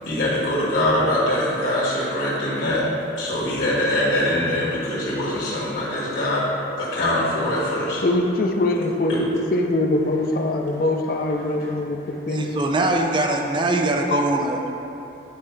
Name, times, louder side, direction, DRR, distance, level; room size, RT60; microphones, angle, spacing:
voice 1, 0.0-2.8 3.2-6.4 6.8-8.0 9.1-9.2, left 1 dB, 65° left, -8 dB, 1.5 m, -23 dB
voice 2, 8.0-12.6, left 2 dB, 50° left, 3 dB, 0.5 m, -23 dB
voice 3, 12.3-14.7, right 2 dB, 25° right, 2 dB, 0.4 m, -22 dB
9.5 x 4.4 x 3.2 m, 3.0 s
head